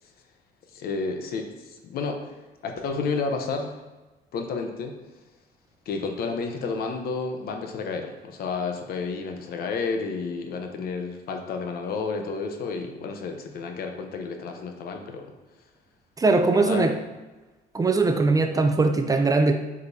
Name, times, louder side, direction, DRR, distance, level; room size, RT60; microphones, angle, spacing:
voice 1, 0.7-2.3 2.6-3.8 4.3-5.0 5.9-15.3 16.4-16.9, left 4 dB, 65° left, 4 dB, 0.9 m, -31 dB
voice 2, 16.2-16.9 17.7-19.6, right 3 dB, 20° right, 6 dB, 0.5 m, -20 dB
8.1 x 5.2 x 2.8 m, 1.2 s
cardioid pair, 110°, 17 cm